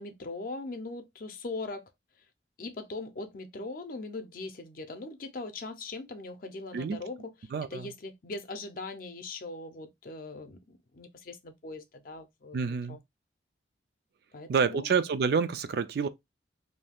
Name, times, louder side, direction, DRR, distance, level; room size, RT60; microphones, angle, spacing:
voice 1, 0.0-1.9 2.6-7.3 7.6-13.0 14.3-14.9, left 3 dB, 50° left, 0.5 m, -40 dB
voice 2, 7.5-7.9 12.5-13.0 14.5-16.1, right 5 dB, 60° right, 0.3 m, -28 dB
2.7 x 2.3 x 3.4 m
head